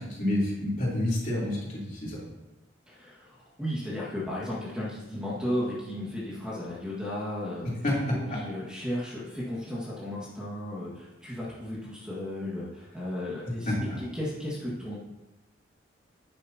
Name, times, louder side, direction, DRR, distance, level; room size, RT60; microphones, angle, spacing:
voice 1, 0.0-2.2 7.8-8.4 13.7-14.0, left 1 dB, 40° left, -6 dB, 3.5 m, -28 dB
voice 2, 2.9-7.8 8.1-13.7 14.0-15.0, left 1 dB, 5° right, -8 dB, 1.8 m, -34 dB
11.5 x 9.7 x 2.9 m, 1.1 s
head